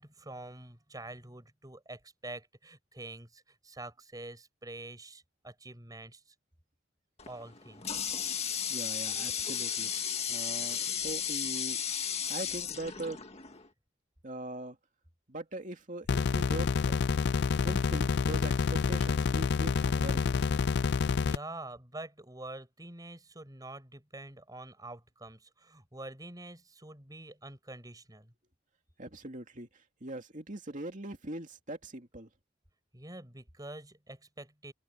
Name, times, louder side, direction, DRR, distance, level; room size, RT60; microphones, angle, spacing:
voice 1, 0.0-6.2 7.3-8.0 21.2-28.3 32.9-34.7, right 2 dB, 20° right, 5.5 m, -46 dB
Water tap faucet, 7.2-13.7, left 8 dB, 35° left, 1.9 m, -34 dB
voice 2, 8.7-9.9 10.3-11.8 12.3-13.2 14.2-14.8 15.3-17.0 17.4-20.3 29.0-29.7 30.0-32.3, right 1 dB, 40° right, 2.6 m, -41 dB
sound 1, 16.1-21.4, left 5 dB, 60° left, 0.4 m, -28 dB
head